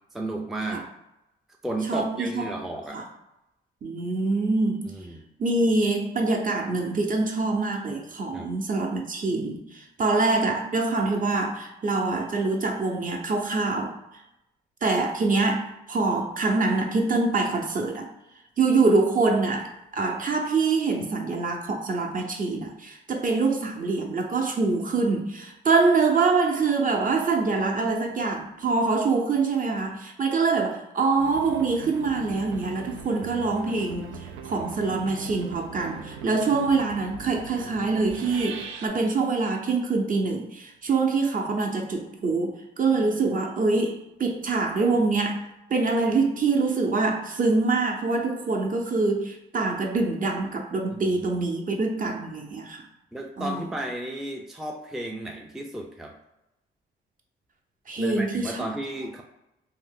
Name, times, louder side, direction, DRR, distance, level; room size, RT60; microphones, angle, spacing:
voice 1, 0.1-0.9 1.6-3.1 4.8-5.2 8.3-8.5 21.0-21.3 50.9-51.2 53.1-56.2 58.0-59.2, right 1 dB, ahead, 1 dB, 0.4 m, -33 dB
voice 2, 1.9-2.5 2.9-3.0 3.8-4.9 5.4-13.9 14.8-18.1 18.6-45.4 45.7-52.8 53.4-53.7 57.9-58.6, right 3 dB, 40° right, 2 dB, 0.7 m, -25 dB
sound 1, 31.2-38.9, right 6 dB, 85° right, 0.4 m, -40 dB
2.7 x 2.0 x 3.5 m, 0.87 s
supercardioid pair, 65°, 21 cm